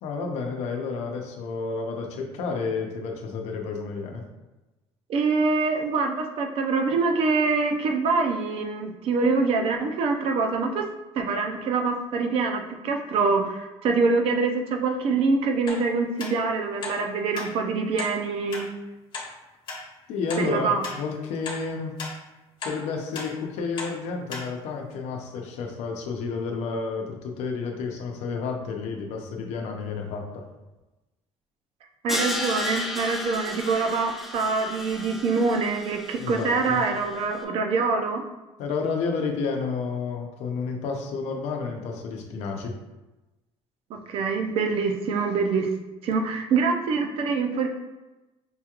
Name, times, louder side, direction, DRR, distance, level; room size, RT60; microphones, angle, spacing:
voice 1, 0.0-4.2 20.1-21.9 22.6-30.4 36.2-36.8 38.6-42.7, left 4 dB, 85° left, 2 dB, 0.7 m, -31 dB
voice 2, 5.1-10.9 11.1-18.7 20.4-20.8 32.0-38.2 43.9-45.7 46.0-47.7, right 4 dB, 60° right, 4 dB, 0.6 m, -25 dB
sound 1, 15.7-15.8 16.2-16.3 16.8-17.0 17.3-17.5 18.0-18.1 18.5-18.6 19.1-19.3 19.7-19.8 20.3-20.4 20.8-21.0 21.4-21.6 22.0-22.1 22.6-22.8 23.1-23.3 23.8-23.9 24.3-24.4 24.9-25.0, left 3 dB, 45° left, 0.9 m, -34 dB
Crash cymbal, 32.1-37.1, left 1 dB, ahead, 0.4 m, -34 dB
5.4 x 2.4 x 2.9 m, 1.1 s
cardioid pair, 145°, 11 cm